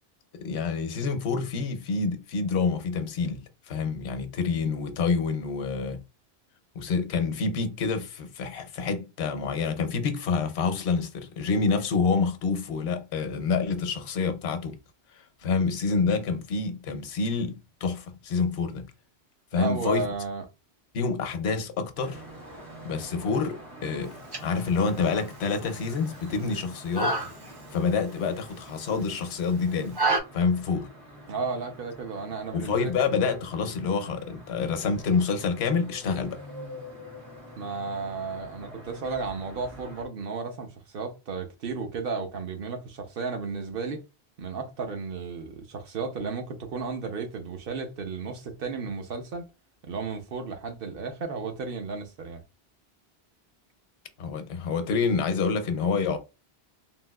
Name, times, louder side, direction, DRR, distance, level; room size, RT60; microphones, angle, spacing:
voice 1, 0.3-6.0 6.8-14.8 15.4-18.8 19.5-20.0 20.9-22.2 22.8-24.2 24.4-27.1 27.7-30.0 30.3-30.9 32.5-36.4 54.2-56.2, left 5 dB, 80° left, 0.9 m, -27 dB
voice 2, 19.5-20.4 31.3-32.9 37.6-44.0 44.4-49.4 49.8-52.4, right 4 dB, 60° right, 0.8 m, -33 dB
sound 1, 22.0-40.1, equal, 85° right, 1.6 m, -46 dB
sound 2, 24.0-30.2, right 2 dB, 30° right, 0.5 m, -33 dB
3.5 x 2.5 x 2.2 m
omnidirectional pair, 1.1 m